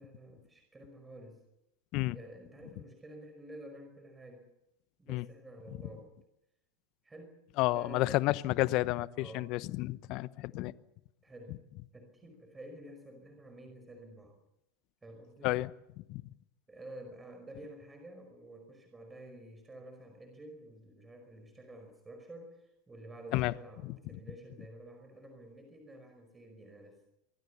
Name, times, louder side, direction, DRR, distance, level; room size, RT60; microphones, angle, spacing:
voice 1, 0.0-1.4 2.1-4.5 5.0-6.1 7.0-7.4 7.7-8.2 9.1-9.5 11.2-11.6 11.9-14.4 15.0-15.5 16.7-27.1, right 1 dB, 15° right, 5 dB, 5.3 m, -50 dB
voice 2, 7.6-10.7 15.4-15.7 16.1-16.2 23.3-23.5 23.8-24.0, left 18 dB, 50° left, 18 dB, 1.0 m, -31 dB
24.5 x 24.0 x 7.0 m, 0.87 s
hypercardioid pair, 90°, 0 cm